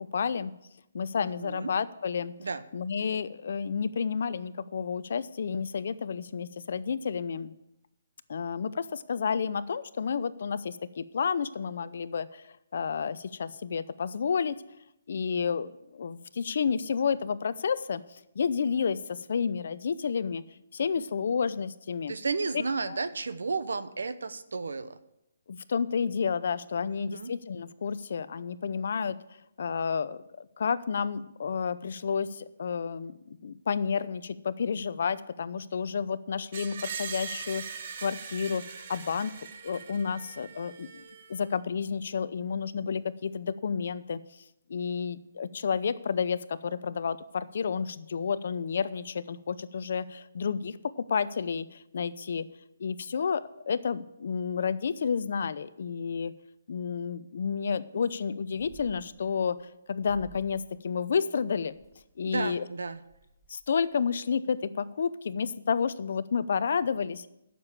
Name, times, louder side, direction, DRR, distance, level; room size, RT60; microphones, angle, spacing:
voice 1, 0.1-0.5 0.9-2.3 2.7-7.5 8.3-14.6 15.1-18.0 18.4-20.4 20.7-22.1 22.9-23.0 25.5-29.2 29.6-39.3 39.6-41.0 41.3-44.2 44.7-50.8 51.1-52.5 52.8-56.3 56.7-59.6 59.9-61.8 62.2-62.6 63.5-67.3, left 6 dB, 55° left, 15 dB, 0.6 m, -30 dB
voice 2, 1.2-1.7 2.4-2.6 20.9-21.0 22.1-25.0 26.9-27.3 62.3-63.0, right 4 dB, 90° right, 13 dB, 0.8 m, -33 dB
Screech, 36.5-41.5, right 6 dB, 45° right, 1.0 m, -41 dB
sound 1, 58.0-58.3 58.5-59.6 60.0-60.7 61.0-62.0 62.6-62.7 62.8-64.0, right 1 dB, 5° left, 1.2 m, -54 dB
9.5 x 6.8 x 7.2 m, 0.84 s
hypercardioid pair, 165°, 0 cm